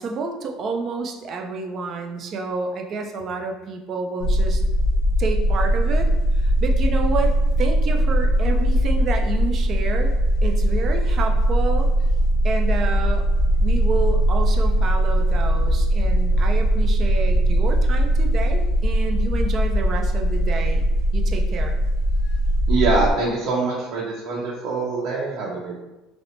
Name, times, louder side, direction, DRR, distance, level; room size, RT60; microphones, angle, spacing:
voice 1, 0.0-4.6 5.2-10.1 10.4-11.9 12.4-13.3 13.6-20.8 21.1-21.7, right 3 dB, 40° right, 3 dB, 0.5 m, -29 dB
sound 1, 4.2-23.1, right 1 dB, 70° left, 1.0 m, -20 dB
voice 2, 22.7-25.8, right 3 dB, 65° right, -5 dB, 0.8 m, -24 dB
5.7 x 2.1 x 3.1 m, 1.0 s
cardioid pair, 140°, 0 cm